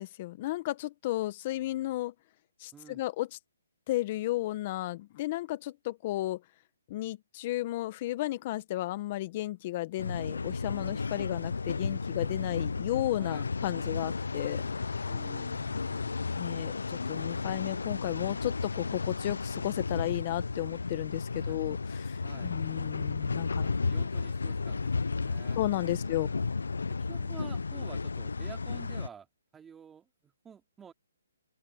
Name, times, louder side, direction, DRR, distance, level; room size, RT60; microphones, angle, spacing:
voice 1, 0.0-2.1 2.6-3.3 3.9-6.4 6.9-14.6 16.3-23.7 25.6-26.3, left 16 dB, 35° left, 1.4 m, -33 dB
voice 2, 2.7-3.0 13.2-13.5 15.0-16.4 21.3-21.6 22.2-22.6 23.6-26.4 27.1-29.3 29.5-30.9, right 7 dB, 10° right, 3.0 m, -51 dB
sound 1, 10.0-29.1, left 4 dB, 90° left, 0.6 m, -33 dB
hypercardioid pair, 155°, 0 cm